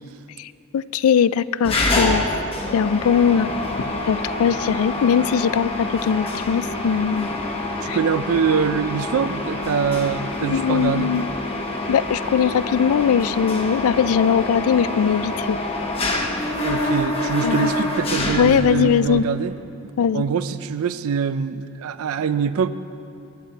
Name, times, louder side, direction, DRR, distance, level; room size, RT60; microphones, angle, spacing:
voice 1, 0.4-2.2 2.7-3.5 4.1-7.3 7.9-8.0 10.4-11.3 11.9-15.6 17.4-17.7 18.4-19.2 20.0-20.2, left 7 dB, 70° left, 17 dB, 0.3 m, -20 dB
Mechanisms, 1.6-19.1, left 2 dB, 25° left, 1.0 m, -26 dB
voice 2, 7.8-11.1 16.6-19.5 20.1-22.7, right 6 dB, 70° right, 13 dB, 0.4 m, -24 dB
21.5 x 10.0 x 4.0 m, 2.7 s
head